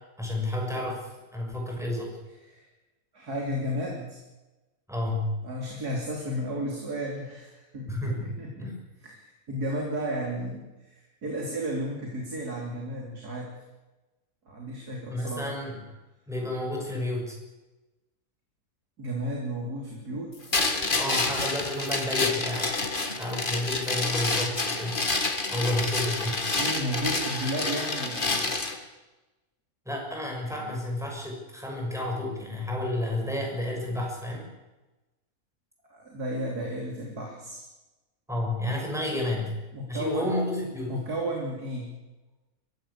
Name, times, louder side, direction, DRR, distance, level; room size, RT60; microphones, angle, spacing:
voice 1, 0.2-2.1 4.9-5.3 7.9-8.2 8.6-8.8 15.1-15.8 16.3-17.4 20.9-22.7 23.2-25.0 25.5-26.4 29.8-34.5 38.3-39.6 39.9-41.0, left 1 dB, ahead, 0 dB, 6.6 m, -31 dB
voice 2, 3.1-4.2 5.4-8.7 9.0-13.5 14.5-15.5 19.0-20.5 26.5-28.5 35.9-37.6 39.1-39.2 39.7-40.3 40.9-41.9, right 1 dB, 80° right, -1 dB, 3.8 m, -33 dB
sound 1, 20.5-28.8, left 3 dB, 35° left, 2.1 m, -28 dB
22.5 x 16.5 x 8.6 m, 1.1 s
omnidirectional pair, 1.6 m